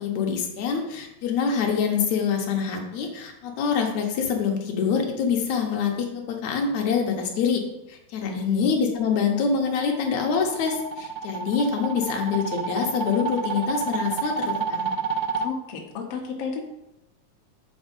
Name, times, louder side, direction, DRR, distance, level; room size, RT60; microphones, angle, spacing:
voice 1, 0.0-7.6 7.9-14.9, left 6 dB, 70° left, 2 dB, 1.8 m, -25 dB
voice 2, 8.2-8.7 15.4-16.6, left 5 dB, 85° left, 1 dB, 1.3 m, -31 dB
sound 1, 9.3-15.5, right 5 dB, 80° right, 2.3 m, -30 dB
7.2 x 4.6 x 5.3 m, 0.89 s
omnidirectional pair, 4.3 m